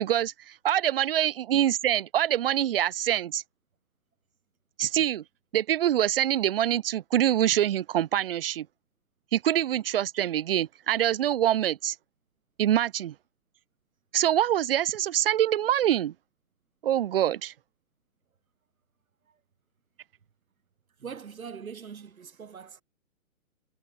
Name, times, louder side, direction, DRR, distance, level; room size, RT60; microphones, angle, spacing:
voice 1, 0.0-3.4 4.8-5.2 5.5-8.7 9.3-12.0 12.6-13.1 14.1-16.1 16.8-17.5, right 11 dB, 40° right, 2.3 m, -25 dB
voice 2, 21.0-22.8, right 6 dB, 75° right, 7.6 m, -42 dB
hypercardioid pair, 160°, 42 cm